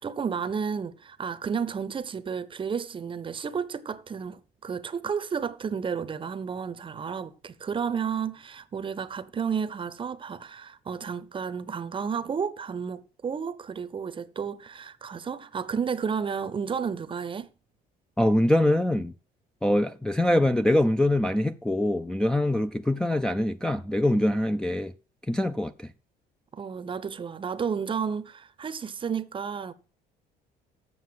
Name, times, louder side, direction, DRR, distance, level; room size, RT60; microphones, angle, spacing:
voice 1, 0.0-17.5 26.5-29.7, right 6 dB, 30° right, 0.7 m, -32 dB
voice 2, 18.2-19.1 19.6-24.9 25.3-25.9, left 1 dB, 5° left, 0.4 m, -24 dB
7.7 x 6.6 x 7.3 m
cardioid pair, 110°, 17 cm